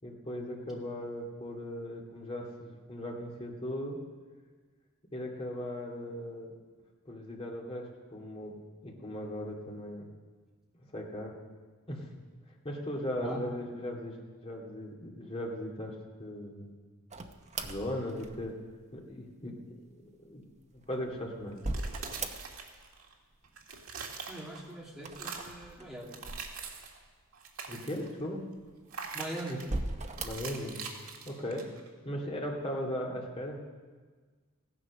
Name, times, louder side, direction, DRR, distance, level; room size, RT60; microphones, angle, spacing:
voice 1, 0.0-4.0 5.1-6.5 7.1-10.0 10.7-11.3 11.9-12.1 12.6-14.2 14.4-16.7 17.6-18.6 18.9-19.6 19.9-20.5 20.7-21.6 27.7-28.4 30.2-30.8 31.3-31.7 32.0-33.6, left 1 dB, 25° left, -1 dB, 2.3 m, -38 dB
sound 1, 17.1-18.8 20.6-22.8 23.1-23.8 24.9-27.1 27.7-27.8 28.6-29.1 29.6-30.6, right 2 dB, 30° right, 0.9 m, -39 dB
sound 2, 21.6-23.1 23.4-24.7 25.1-25.6 26.0-27.0 27.3-28.1 28.9-29.7 30.2-31.9, right 5 dB, 70° right, 1.8 m, -43 dB
voice 2, 24.3-26.2 29.1-29.6, right 1 dB, ahead, -3 dB, 2.4 m, -41 dB
16.0 x 10.0 x 6.3 m, 1.4 s
head